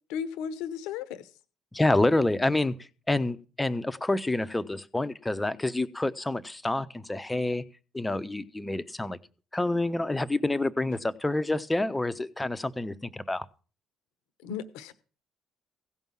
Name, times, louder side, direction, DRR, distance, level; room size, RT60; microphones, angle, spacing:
voice 1, 0.1-1.3 14.4-14.9, left 7 dB, 70° left, 1.0 m, -35 dB
voice 2, 1.7-2.7 3.1-7.6 7.9-9.2 9.5-13.4, left 2 dB, 15° left, 0.9 m, -28 dB
16.0 x 5.4 x 7.5 m
hypercardioid pair, 50°, 0 cm